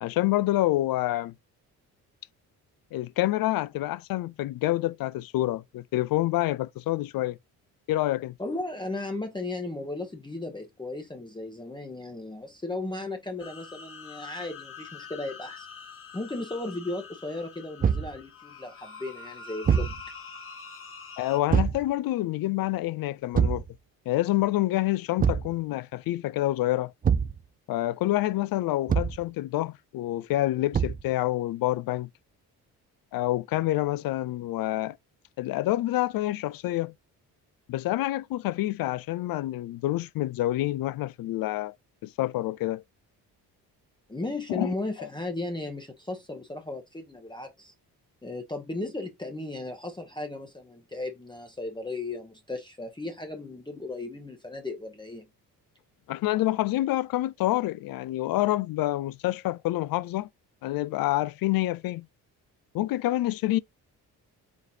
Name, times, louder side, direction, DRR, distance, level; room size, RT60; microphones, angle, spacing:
voice 1, 0.0-1.3 2.9-7.4 7.9-8.3 21.2-23.6 24.1-26.9 27.7-32.1 33.1-35.0 35.4-36.9 37.7-41.7 42.0-42.8 44.5-44.7 45.0-45.1 56.1-60.3 60.6-62.1 62.7-63.6, left 16 dB, 60° left, 0.5 m, -27 dB
voice 2, 8.4-15.7 16.1-20.0 44.1-47.7 48.2-55.3, left 2 dB, 10° left, 1.0 m, -35 dB
sound 1, 13.4-21.4, left 6 dB, 35° left, 1.3 m, -45 dB
Thump thud, 17.8-18.2 19.6-20.0 21.5-21.8 23.3-23.7 25.2-25.5 27.0-27.4 28.9-29.2 30.7-31.1, right 7 dB, 25° right, 0.4 m, -24 dB
4.2 x 3.1 x 2.8 m
supercardioid pair, 65°, 39 cm